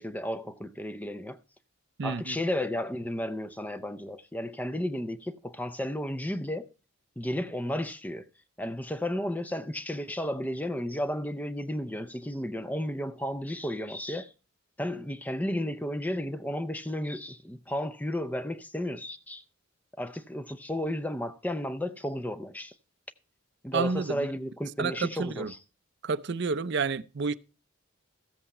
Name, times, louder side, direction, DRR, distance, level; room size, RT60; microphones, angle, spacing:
voice 1, 0.0-1.4 2.0-6.7 7.2-8.3 8.6-14.3 14.8-19.4 20.0-22.7 23.6-25.6, left 1 dB, 10° left, 0.5 m, -33 dB
voice 2, 2.0-2.3 23.7-24.3 24.8-25.5 26.0-27.3, right 4 dB, 55° right, 0.5 m, -30 dB
14.5 x 7.9 x 4.2 m
head